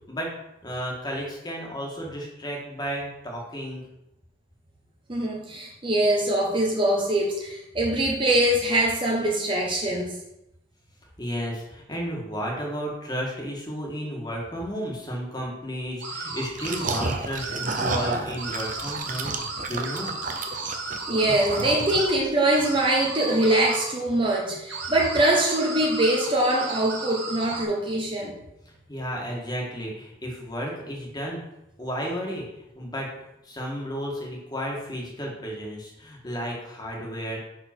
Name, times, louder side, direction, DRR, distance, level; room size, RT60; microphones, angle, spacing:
voice 1, 0.6-3.8 11.2-20.1 28.6-31.4 31.8-37.4, equal, 20° left, -2 dB, 1.8 m, -33 dB
voice 2, 5.1-10.2 21.1-28.3, right 1 dB, 25° right, -1 dB, 1.0 m, -23 dB
sound 1, 16.0-17.1 17.4-18.1 18.4-22.2 22.5-23.9 24.7-27.6, right 3 dB, 65° right, 1.6 m, -34 dB
sound 2, 16.5-22.3, right 3 dB, 40° right, 0.7 m, -31 dB
6.2 x 4.9 x 6.0 m, 0.86 s
head